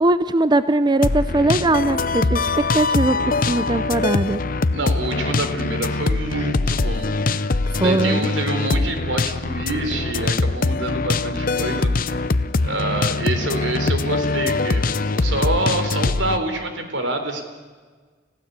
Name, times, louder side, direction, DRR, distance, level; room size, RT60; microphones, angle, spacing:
voice 1, 0.0-3.2 3.5-4.4 7.8-8.3, right 2 dB, 25° right, 13 dB, 0.6 m, -20 dB
sound 1, 1.0-16.4, left 3 dB, 50° left, 0.7 m, -22 dB
voice 2, 4.7-7.1 7.5-12.3 12.6-17.4, right 2 dB, 85° right, 6 dB, 3.9 m, -27 dB
30.0 x 15.5 x 8.3 m, 1.5 s
head